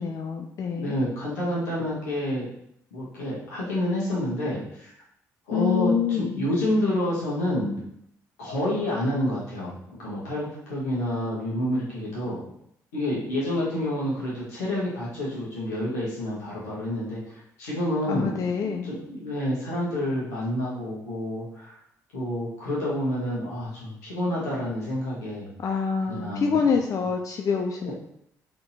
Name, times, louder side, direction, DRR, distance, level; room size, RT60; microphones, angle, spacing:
voice 1, 0.0-0.9 5.5-6.5 18.1-18.9 25.6-27.9, left 6 dB, 40° left, 2 dB, 0.4 m, -26 dB
voice 2, 0.7-2.4 2.9-4.9 5.5-7.8 8.4-9.7 10.0-12.4 12.9-21.8 22.1-25.5 26.1-26.7 27.8-27.9, left 1 dB, 75° left, -7 dB, 1.6 m, -28 dB
4.1 x 3.6 x 2.8 m, 0.74 s
figure-of-eight pair, 45°, 9 cm